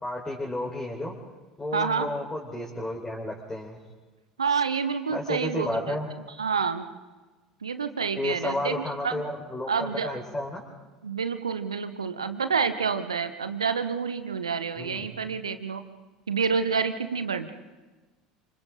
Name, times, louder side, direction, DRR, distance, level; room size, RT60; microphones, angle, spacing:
voice 1, 0.0-1.1 1.6-3.8 5.1-6.1 8.2-10.6 14.8-15.1, left 1 dB, 15° left, -3 dB, 4.4 m, -32 dB
voice 2, 1.7-2.1 4.4-6.0 6.4-6.9 7.6-9.2 9.7-10.2 11.0-15.8 16.3-17.5, right 5 dB, 80° right, 10 dB, 1.2 m, -28 dB
29.0 x 27.0 x 3.9 m, 1.2 s
figure-of-eight pair, 70°, 3 cm